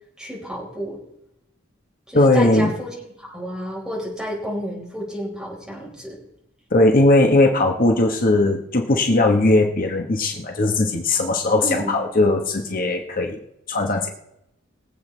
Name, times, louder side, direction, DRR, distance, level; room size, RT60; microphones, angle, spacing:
voice 1, 0.2-1.0 2.1-6.2 11.6-11.9, equal, 5° right, -3 dB, 4.6 m, -31 dB
voice 2, 2.1-2.7 6.7-13.4 13.7-14.1, left 2 dB, 45° left, 3 dB, 1.3 m, -18 dB
23.5 x 8.0 x 3.4 m, 0.81 s
head